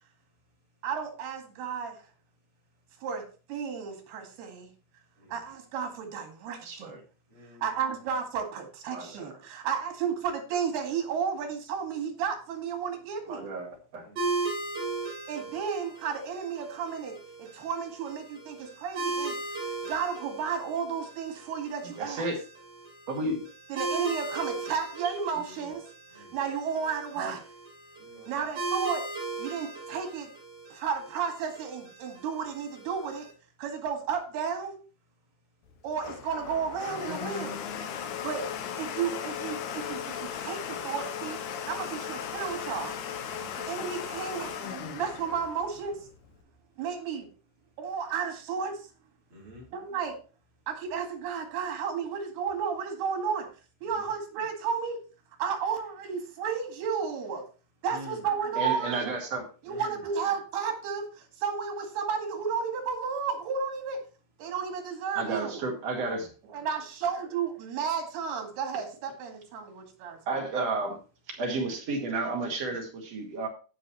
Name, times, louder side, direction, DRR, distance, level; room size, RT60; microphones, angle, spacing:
voice 1, 0.8-2.0 3.0-3.2 3.5-4.7 5.3-7.0 7.6-13.5 15.3-22.3 23.7-25.9 26.3-27.4 28.3-29.1 29.4-30.3 30.7-33.3 33.6-34.8 35.8-37.6 38.2-38.5 38.8-41.4 41.7-43.0 43.6-46.1 46.8-47.3 47.8-48.9 49.7-50.2 50.7-53.5 53.8-55.0 55.4-57.4 57.8-59.1 59.6-64.0 64.4-65.6 66.5-70.5, right 6 dB, 85° right, 4.0 m, -33 dB
voice 2, 6.6-7.0 8.9-9.3 13.3-14.1 22.0-22.4 23.1-23.4 27.2-27.3 58.6-59.4 65.2-66.3 70.3-71.0 71.4-73.5, right 3 dB, 45° right, 2.7 m, -32 dB
voice 3, 7.3-7.9 14.0-14.3 15.3-15.5 26.1-26.4 28.0-28.4 38.0-38.3 43.2-43.5 49.3-49.7 53.8-54.1 57.9-58.2 59.6-60.0 66.0-66.3, left 1 dB, 30° right, 4.6 m, -49 dB
sound 1, 14.2-33.3, right 3 dB, 65° right, 6.3 m, -38 dB
Domestic sounds home sounds, 35.7-46.4, left 8 dB, 70° left, 1.9 m, -37 dB
15.5 x 5.6 x 3.1 m
omnidirectional pair, 4.5 m